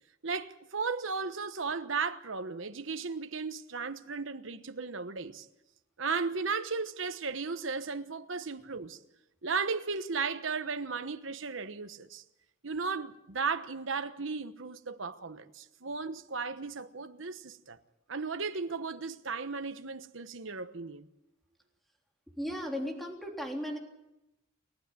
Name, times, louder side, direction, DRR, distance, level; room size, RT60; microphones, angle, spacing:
voice 1, 0.2-5.5 6.0-9.0 9.4-12.2 12.6-17.8 18.1-21.1, right 4 dB, 70° right, 1.2 m, -35 dB
voice 2, 22.4-23.8, equal, ahead, 3.5 m, -36 dB
29.0 x 12.0 x 8.9 m
head